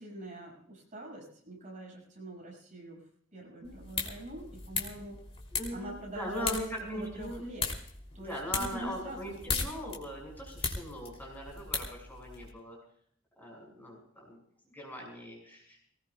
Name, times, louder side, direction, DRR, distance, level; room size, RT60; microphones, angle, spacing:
voice 1, 0.0-3.0 3.3-5.2 5.7-6.6 6.9-7.7 8.1-9.2 9.4-9.7, right 1 dB, 40° right, -2 dB, 6.6 m, -44 dB
sound 1, 3.6-12.5, left 4 dB, 30° left, 3.1 m, -38 dB
voice 2, 5.5-7.4 8.2-12.8 13.4-15.8, equal, 10° left, -1 dB, 5.8 m, -40 dB
21.5 x 19.5 x 2.4 m, 0.63 s
head